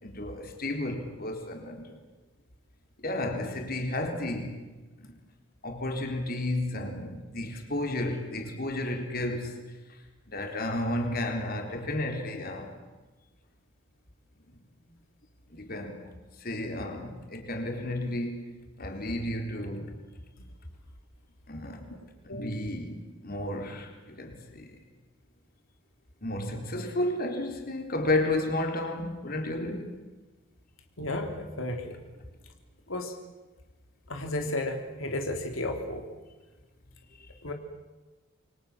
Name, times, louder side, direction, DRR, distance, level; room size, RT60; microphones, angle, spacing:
voice 1, 0.0-2.0 3.0-4.6 5.0-5.1 5.6-9.6 10.3-12.8 15.5-16.0 16.4-18.5 18.8-20.0 21.5-21.9 22.2-24.8 26.2-30.0 37.2-37.3, left 1 dB, 45° left, 4.1 m, -32 dB
voice 2, 22.3-22.6 31.0-32.0 32.9-33.1 34.1-36.0 37.4-37.5, left 1 dB, 80° left, 3.3 m, -33 dB
28.0 x 24.5 x 7.5 m
head